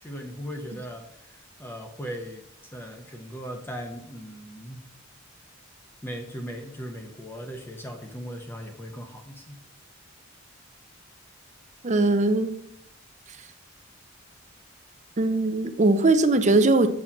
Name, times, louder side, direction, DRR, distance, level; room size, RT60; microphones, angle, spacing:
voice 1, 0.0-2.4 2.7-4.9 6.0-9.6, equal, 10° left, 4 dB, 0.7 m, -38 dB
voice 2, 11.8-12.5 15.2-16.9, right 2 dB, 35° right, 10 dB, 0.6 m, -20 dB
7.4 x 4.3 x 5.8 m, 0.74 s
head